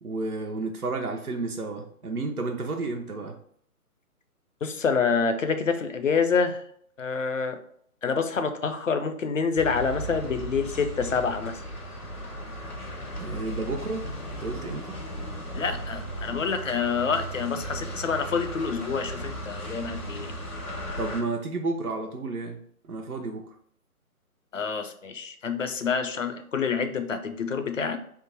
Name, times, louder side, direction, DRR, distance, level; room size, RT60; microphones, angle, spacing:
voice 1, 0.0-3.4 13.2-14.1 14.4-15.0 21.0-22.6 22.8-23.5, right 3 dB, 75° right, 3 dB, 0.8 m, -31 dB
voice 2, 4.6-6.6 7.0-7.6 8.0-11.6 15.5-20.3 24.5-28.0, left 5 dB, 60° left, 8 dB, 0.6 m, -27 dB
sound 1, 9.6-21.2, right 1 dB, 85° left, 1.7 m, -36 dB
3.6 x 2.6 x 4.4 m, 0.64 s
figure-of-eight pair, 140°, 45 cm